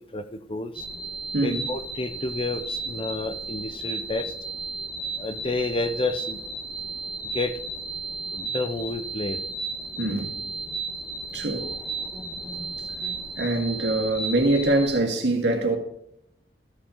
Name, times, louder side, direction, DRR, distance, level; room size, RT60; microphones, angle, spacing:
voice 1, 0.1-0.7 1.4-4.3 5.2-6.4 7.3-7.5 8.3-9.4, left 2 dB, 30° left, 0.5 m, -30 dB
sound 1, 0.7-15.0, right 3 dB, 5° right, 1.1 m, -34 dB
voice 2, 1.3-1.7 10.0-10.3 11.3-11.7 13.4-15.8, right 2 dB, 80° right, 1.9 m, -24 dB
13.0 x 5.6 x 3.8 m
head